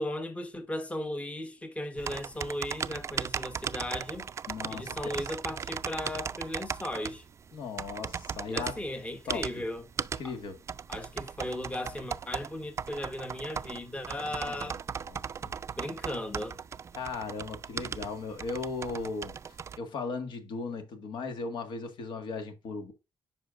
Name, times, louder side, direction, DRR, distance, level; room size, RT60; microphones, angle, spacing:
voice 1, 0.0-4.2 4.7-7.2 8.5-9.8 10.9-14.8 15.8-16.6, left 1 dB, 15° left, 1.1 m, -36 dB
sound 1, 2.0-19.8, right 7 dB, 35° right, 0.3 m, -38 dB
voice 2, 4.5-5.3 7.5-8.8 9.3-9.6 10.2-10.6 14.2-14.7 15.1-15.2 15.4-15.5 17.0-19.3 19.8-22.9, left 4 dB, 70° left, 1.6 m, -37 dB
8.4 x 5.5 x 2.5 m
cardioid pair, 100°, 8 cm